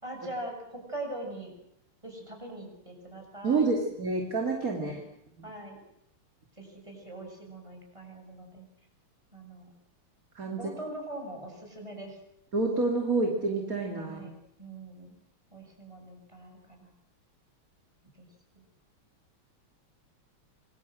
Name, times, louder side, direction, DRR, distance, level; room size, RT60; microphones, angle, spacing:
voice 1, 0.0-1.5 2.0-3.7 4.6-5.1 5.4-5.8 6.6-8.7 9.3-9.7 10.4-12.2 14.0-14.3 14.6-15.1 15.5-16.9 18.2-18.3 18.6-18.7, right 1 dB, 15° right, 2 dB, 7.5 m, -42 dB
voice 2, 3.4-5.0 5.4-5.5 10.3-10.6 12.5-14.4, right 3 dB, 40° right, 2 dB, 3.3 m, -28 dB
27.5 x 23.0 x 7.9 m, 0.80 s
omnidirectional pair, 2.4 m